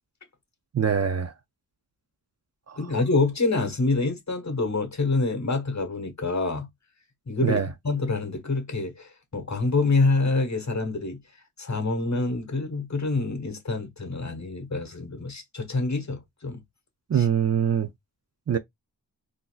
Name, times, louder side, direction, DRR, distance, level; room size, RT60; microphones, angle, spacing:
voice 1, 0.7-1.3 2.7-2.8 7.4-7.7 17.1-17.9 18.5-18.6, right 7 dB, 40° right, 0.4 m, -23 dB
voice 2, 2.8-6.7 7.3-7.6 7.8-11.2 11.6-16.6 17.1-17.3, left 3 dB, 45° left, 1.3 m, -26 dB
3.9 x 2.7 x 2.4 m
wide cardioid pair, 100°, 40 cm